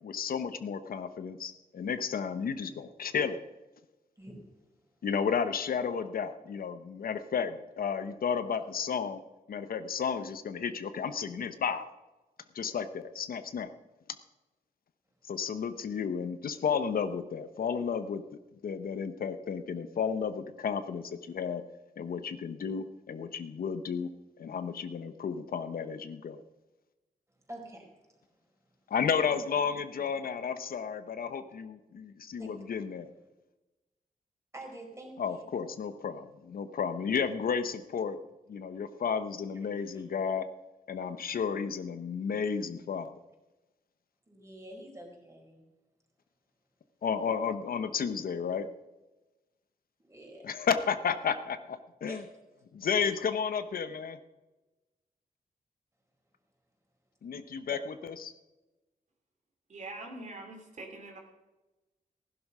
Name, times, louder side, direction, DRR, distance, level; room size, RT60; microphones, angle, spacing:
voice 1, 0.0-3.4 5.0-9.2 9.5-11.9 12.5-13.7 15.3-18.2 18.6-21.6 22.0-24.1 24.4-26.4 28.9-33.1 35.2-38.2 38.5-40.4 40.9-43.1 47.0-48.7 50.4-52.2 52.7-54.2 57.2-58.3, left 6 dB, 80° left, 11 dB, 0.9 m, -32 dB
voice 2, 27.5-27.9 32.4-32.5 34.5-35.5 39.7-40.0 44.3-45.6 50.1-50.5 52.1-52.3 52.9-53.0, right 1 dB, 20° right, 0 dB, 4.6 m, -47 dB
voice 3, 59.7-61.2, right 2 dB, 55° right, 3 dB, 3.0 m, -43 dB
15.5 x 11.0 x 5.5 m, 1.1 s
wide cardioid pair, 115°, 15 cm